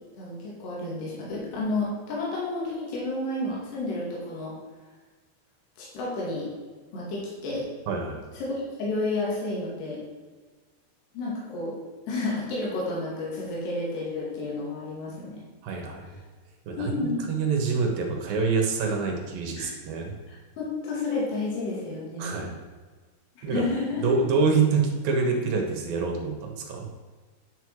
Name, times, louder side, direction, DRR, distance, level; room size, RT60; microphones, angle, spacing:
voice 1, 0.1-4.5 5.8-6.5 6.9-7.7 8.3-10.0 11.1-11.7 12.1-15.4 16.8-17.3 19.6-19.7 20.3-22.4 23.4-24.0, left 2 dB, 70° left, -5 dB, 4.5 m, -31 dB
voice 2, 7.9-8.2 15.6-16.2 16.7-20.1 22.2-22.6 23.4-23.7 24.0-26.9, right 4 dB, 65° right, 1 dB, 2.9 m, -26 dB
10.5 x 6.8 x 4.8 m, 1.4 s
omnidirectional pair, 5.0 m